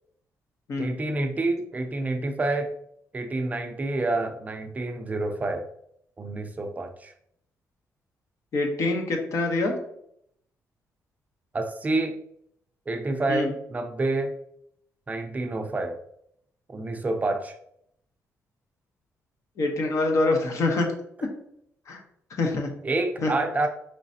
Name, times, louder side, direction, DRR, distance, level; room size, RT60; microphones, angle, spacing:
voice 1, 0.8-2.7 3.1-5.6 6.2-7.1 11.5-12.2 12.9-14.3 15.1-16.0 16.7-17.5 22.8-23.7, right 2 dB, 25° right, 6 dB, 0.5 m, -28 dB
voice 2, 8.5-9.8 13.3-13.5 19.6-20.9 21.9-22.0 22.4-22.7 23.2-23.3, left 2 dB, 60° left, 3 dB, 0.9 m, -25 dB
4.8 x 3.2 x 2.7 m, 0.71 s
cardioid pair, 120°, 6 cm